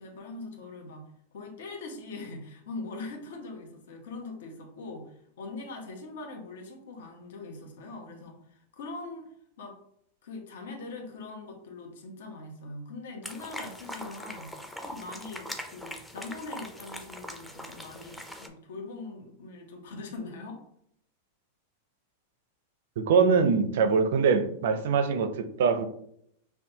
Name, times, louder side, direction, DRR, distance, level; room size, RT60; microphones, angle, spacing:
voice 1, 0.0-9.3 9.6-9.8 10.2-20.6, left 3 dB, 80° left, 0.9 m, -42 dB
sound 1, 13.2-18.5, left 1 dB, 5° left, 0.4 m, -41 dB
voice 2, 23.0-25.9, right 5 dB, 70° right, 0.5 m, -23 dB
5.6 x 2.2 x 2.7 m
supercardioid pair, 145°, 0 cm